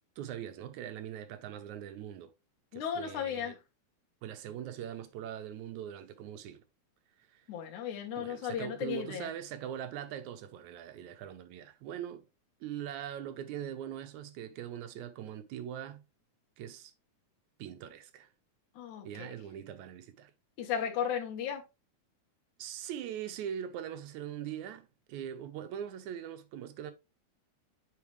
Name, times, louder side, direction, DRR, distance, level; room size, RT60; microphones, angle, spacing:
voice 1, 0.2-2.3 2.7-3.6 4.2-6.6 7.3-7.5 8.2-12.2 12.6-16.0 16.6-16.9 17.6-18.3 19.1-20.3 22.6-26.9, right 10 dB, 75° right, 2.2 m, -41 dB
voice 2, 2.7-3.6 7.5-9.3 18.8-19.4 20.6-21.6, left 8 dB, 75° left, 2.7 m, -35 dB
8.6 x 4.2 x 3.1 m
omnidirectional pair, 3.5 m